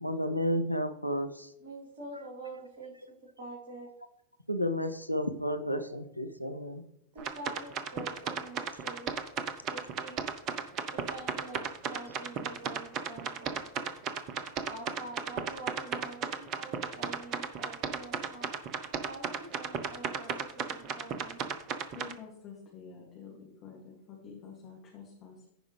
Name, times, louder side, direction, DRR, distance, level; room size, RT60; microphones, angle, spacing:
voice 1, 0.0-1.5 4.5-6.8, equal, 90° left, 8 dB, 0.6 m, -32 dB
voice 2, 1.6-3.0 3.4-3.9 7.1-9.1 9.7-10.2 10.9-13.6 14.6-18.5 19.0-21.4, right 2 dB, 55° right, -6 dB, 3.0 m, -46 dB
sound 1, 7.2-22.1, right 7 dB, 35° right, 0.9 m, -34 dB
voice 3, 21.9-25.4, left 6 dB, 35° left, -3 dB, 2.5 m, -48 dB
15.0 x 5.1 x 3.3 m, 0.79 s
figure-of-eight pair, 90°, 0 cm